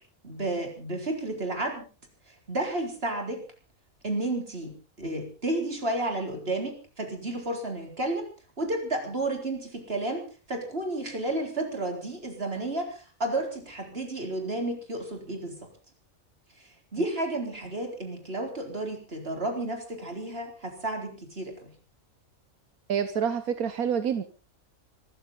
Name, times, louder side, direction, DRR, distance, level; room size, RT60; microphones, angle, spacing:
voice 1, 0.2-1.9 2.5-3.4 4.0-8.3 8.6-15.7 16.9-21.7, right 2 dB, 45° right, 3 dB, 4.2 m, -32 dB
voice 2, 22.9-24.2, right 7 dB, 80° right, 10 dB, 1.5 m, -27 dB
24.5 x 13.5 x 4.0 m, 0.36 s
omnidirectional pair, 1.5 m